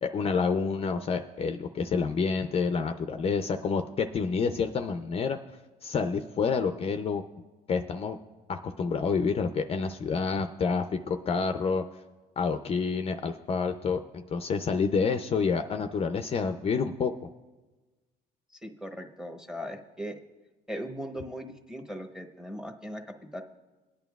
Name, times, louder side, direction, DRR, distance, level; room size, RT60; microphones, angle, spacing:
voice 1, 0.0-5.4 5.8-7.2 7.7-8.2 8.5-11.8 12.4-17.3, left 5 dB, 35° left, 7 dB, 0.5 m, -28 dB
voice 2, 18.6-20.2 20.7-23.0 23.3-23.4, equal, 5° right, 4 dB, 0.9 m, -38 dB
21.5 x 9.0 x 2.3 m, 1.2 s
cardioid pair, 110°, 17 cm